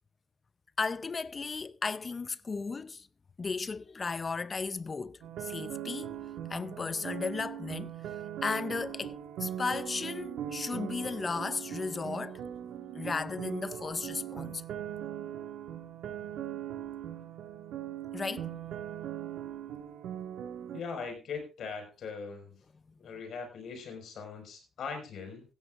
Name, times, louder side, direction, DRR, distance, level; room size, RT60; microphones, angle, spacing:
voice 1, 0.8-3.1 3.4-6.1 6.5-8.0 8.4-12.4 12.9-14.6 18.1-18.5, left 4 dB, 30° left, 0.6 m, -35 dB
sound 1, 5.2-20.8, right 10 dB, 80° right, 1.8 m, -40 dB
voice 2, 20.7-22.6 23.0-25.4, left 5 dB, 60° left, 5.2 m, -40 dB
16.5 x 14.5 x 2.5 m
cardioid pair, 105°, 0 cm